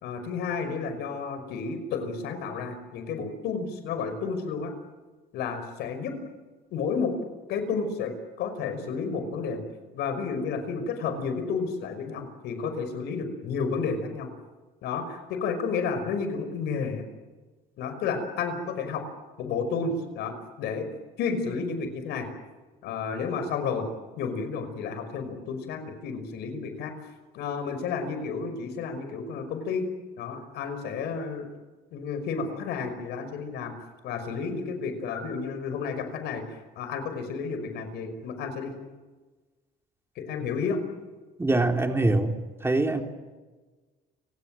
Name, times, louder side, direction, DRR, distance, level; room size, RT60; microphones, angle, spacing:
voice 1, 0.0-4.7 5.3-6.1 6.7-7.2 7.5-9.6 9.9-14.3 14.8-17.0 17.8-19.1 19.4-20.9 21.2-22.3 22.8-23.9 24.2-26.9 27.3-29.9 30.2-31.5 31.9-33.7 34.0-38.7 40.2-40.8, left 5 dB, 80° left, 8 dB, 5.5 m, -31 dB
voice 2, 41.4-42.3 42.6-43.0, right 2 dB, 15° right, 4 dB, 3.5 m, -23 dB
29.5 x 18.5 x 7.7 m, 1.3 s
cardioid pair, 110°, 17 cm